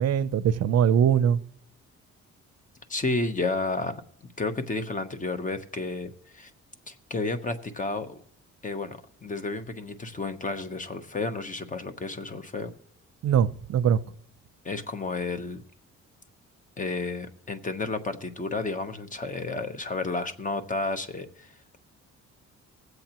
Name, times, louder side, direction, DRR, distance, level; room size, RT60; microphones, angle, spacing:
voice 1, 0.0-1.4 13.2-14.0, right 8 dB, 60° right, 0.6 m, -22 dB
voice 2, 2.9-4.0 4.4-6.5 6.9-8.2 8.6-12.7 14.6-15.6 16.8-21.5, left 3 dB, 25° left, 1.0 m, -31 dB
21.5 x 7.9 x 3.0 m
cardioid pair, 90°, 30 cm